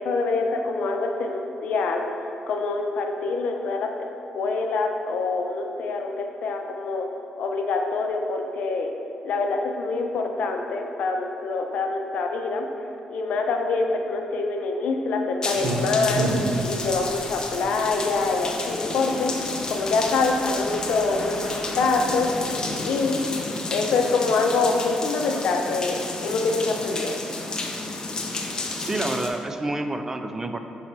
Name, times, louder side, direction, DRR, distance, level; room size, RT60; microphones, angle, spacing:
voice 1, 0.0-2.1 2.5-3.9 4.3-7.1 7.4-8.9 9.2-12.6 13.1-16.3 16.6-19.3 19.7-22.3 22.8-23.2 23.7-27.2, left 3 dB, 75° left, 3 dB, 0.6 m, -25 dB
sound 1, 15.4-29.3, left 2 dB, 35° left, 0.6 m, -31 dB
Clock, 15.5-23.0, right 1 dB, 85° right, 0.9 m, -32 dB
voice 2, 28.7-30.6, right 2 dB, 20° right, 6 dB, 0.4 m, -28 dB
5.3 x 4.1 x 4.5 m, 2.8 s
cardioid pair, 100°, 2 cm